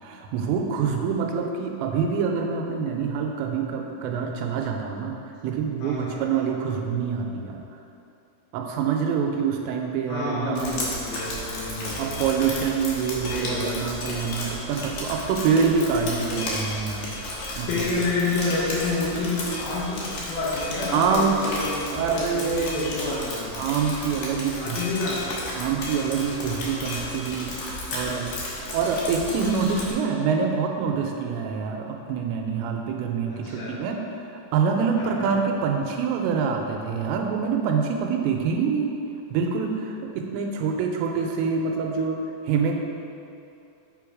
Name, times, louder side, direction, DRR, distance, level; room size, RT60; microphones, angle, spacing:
voice 1, 0.0-5.2 5.4-7.6 8.5-10.8 11.9-17.1 17.6-17.7 20.9-21.3 21.9-23.0 23.6-24.8 25.6-28.3 28.7-38.9 39.3-42.2 42.4-42.7, right 6 dB, 90° right, 2 dB, 2.9 m, -26 dB
voice 2, 5.8-6.4 10.1-12.2 13.2-13.7 16.0-16.5 17.7-23.5 24.6-25.2 33.3-33.7 35.0-35.3, left 3 dB, 75° left, -7 dB, 2.5 m, -29 dB
Drip, 10.6-29.9, left 1 dB, 90° left, 1.6 m, -33 dB
7.4 x 3.8 x 4.7 m, 2.7 s
omnidirectional pair, 5.1 m